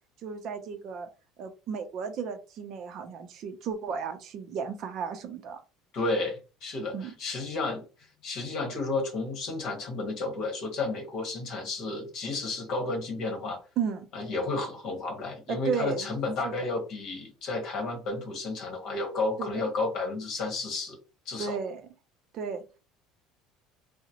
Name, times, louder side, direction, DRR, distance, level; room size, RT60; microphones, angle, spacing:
voice 1, 0.2-1.1 1.4-5.6 6.9-7.1 13.8-14.1 15.5-16.2 16.4-16.7 19.4-19.6 21.4-21.8 22.3-22.6, right 6 dB, 45° right, 0.5 m, -34 dB
voice 2, 5.9-7.8 8.2-13.6 14.1-21.0 21.3-21.6, left 3 dB, 45° left, 1.1 m, -32 dB
3.7 x 2.1 x 2.9 m
cardioid pair, 160°, 0 cm